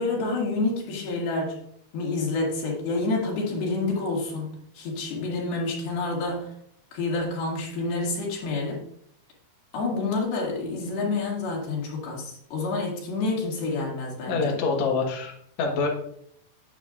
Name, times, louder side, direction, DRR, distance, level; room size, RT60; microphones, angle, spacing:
voice 1, 0.0-1.6 1.9-4.5 4.8-6.5 6.9-8.8 9.7-14.6, left 3 dB, 85° left, -2 dB, 3.9 m, -28 dB
voice 2, 14.3-15.9, left 4 dB, 60° left, 0 dB, 2.2 m, -26 dB
9.1 x 8.5 x 2.4 m, 0.69 s
omnidirectional pair, 4.3 m